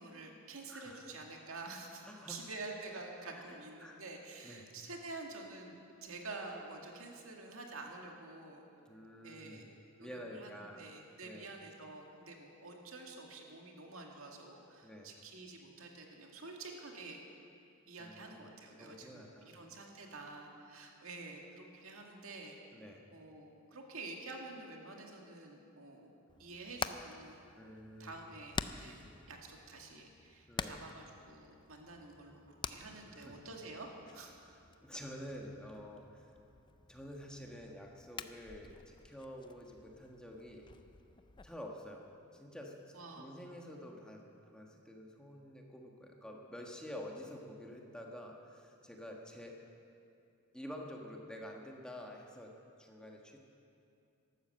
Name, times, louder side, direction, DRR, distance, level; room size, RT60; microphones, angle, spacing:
voice 1, 0.0-8.7 9.2-9.7 10.0-10.5 10.8-17.2 17.9-22.6 23.1-26.1 26.4-27.4 28.0-28.9 29.3-34.3 42.9-43.3, right 3 dB, 85° right, 1 dB, 2.0 m, -48 dB
voice 2, 0.7-1.0 2.0-2.5 3.3-4.0 4.4-4.6 8.9-9.7 10.0-10.9 11.2-11.5 14.8-15.1 18.0-18.3 18.8-19.6 22.7-23.1 27.6-28.2 30.5-30.8 32.9-33.3 34.5-36.3 36.9-40.7 41.4-42.0 42.3-49.6 50.5-52.5 52.8-53.4, equal, 5° left, 0 dB, 1.3 m, -49 dB
Hammer, 26.3-41.5, left 5 dB, 25° left, 0.4 m, -48 dB
13.0 x 12.0 x 7.6 m, 2.5 s
head